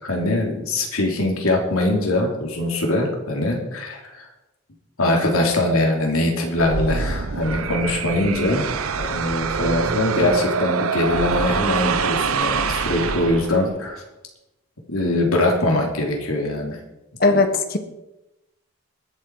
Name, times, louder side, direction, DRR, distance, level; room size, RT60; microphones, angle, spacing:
voice 1, 0.0-4.3 5.0-8.7 9.0-14.0 14.9-16.8, left 1 dB, 85° left, 1 dB, 3.3 m, -22 dB
sound 1, 6.6-13.8, right 5 dB, 90° right, 0.8 m, -25 dB
voice 2, 17.2-17.8, left 3 dB, 45° left, 7 dB, 1.4 m, -18 dB
21.0 x 7.8 x 4.8 m, 0.97 s
head